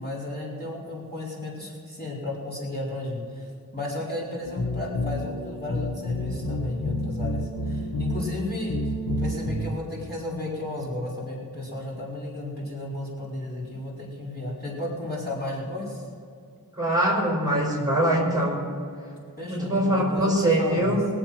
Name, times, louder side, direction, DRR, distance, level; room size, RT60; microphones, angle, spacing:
voice 1, 0.0-16.1 19.4-21.0, left 2 dB, 25° left, -6 dB, 4.5 m, -33 dB
sound 1, 4.4-9.8, left 1 dB, 75° left, 1.4 m, -29 dB
voice 2, 16.7-18.7 19.5-21.0, right 1 dB, 10° right, -2 dB, 4.7 m, -23 dB
23.0 x 7.9 x 6.1 m, 2.3 s
wide cardioid pair, 50°, 35 cm